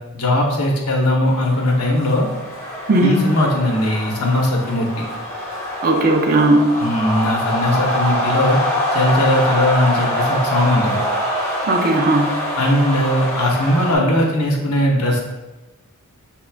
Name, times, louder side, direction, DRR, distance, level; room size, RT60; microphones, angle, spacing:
voice 1, 0.1-2.3 3.0-5.0 6.8-8.6 8.9-11.0 12.6-15.2, left 1 dB, 70° left, -1 dB, 1.0 m, -19 dB
sound 1, 1.3-14.0, equal, 15° left, 1.3 m, -24 dB
voice 2, 2.9-3.3 5.8-6.7 11.7-12.3, right 2 dB, 40° right, 3 dB, 0.5 m, -16 dB
6.0 x 3.7 x 2.3 m, 1.1 s
head